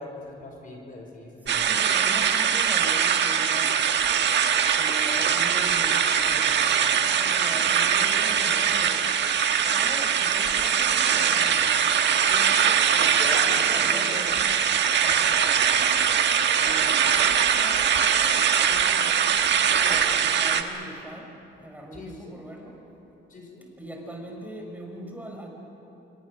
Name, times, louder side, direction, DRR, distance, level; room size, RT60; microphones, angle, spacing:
voice 1, 0.0-1.9 12.3-14.3 21.9-22.4 23.3-23.7, left 2 dB, 45° left, 2 dB, 4.9 m, -41 dB
voice 2, 1.4-4.0 4.7-9.2 9.7-12.2 13.4-14.4 15.0-15.5 16.5-19.2 19.6-21.4 21.6-22.8 23.8-25.5, right 1 dB, 10° right, 1 dB, 5.1 m, -41 dB
sound 1, 1.5-20.6, right 8 dB, 60° right, 1.5 m, -22 dB
27.0 x 22.5 x 6.3 m, 2.9 s
cardioid pair, 90°, 20 cm